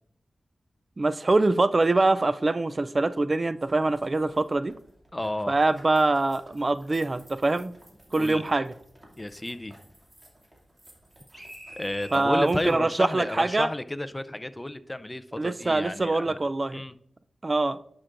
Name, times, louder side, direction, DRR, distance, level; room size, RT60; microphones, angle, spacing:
voice 1, 1.0-4.7 5.5-7.7 8.1-8.7 12.1-13.7 15.4-16.8 17.4-17.8, right 2 dB, 40° right, 14 dB, 0.3 m, -24 dB
sound 1, 3.6-12.7, right 1 dB, 25° right, 2.4 m, -50 dB
voice 2, 5.1-5.6 8.1-8.4 9.2-9.7 11.8-16.4 16.7-16.9, left 1 dB, 20° left, 13 dB, 0.5 m, -32 dB
11.0 x 5.9 x 2.5 m, 0.70 s
cardioid pair, 55°, 0 cm